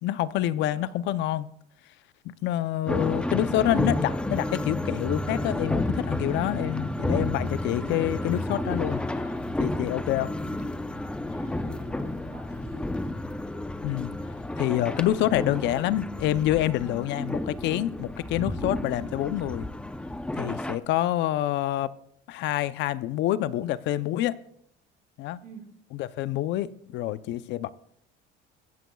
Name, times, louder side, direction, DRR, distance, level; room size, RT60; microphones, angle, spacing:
voice 1, 0.0-1.5 2.2-9.0 9.6-10.4 13.8-14.1 14.6-19.7 20.3-21.9 22.3-24.4 25.2-25.4 26.0-27.7, left 13 dB, 65° left, 0.7 m, -27 dB
sound 1, 2.9-20.8, left 1 dB, 5° left, 0.7 m, -31 dB
sound 2, 8.6-15.9, left 6 dB, 85° left, 5.5 m, -50 dB
voice 2, 11.4-12.8 25.4-25.7, right 5 dB, 55° right, 5.4 m, -48 dB
22.5 x 15.5 x 2.3 m
cardioid pair, 130°, 20 cm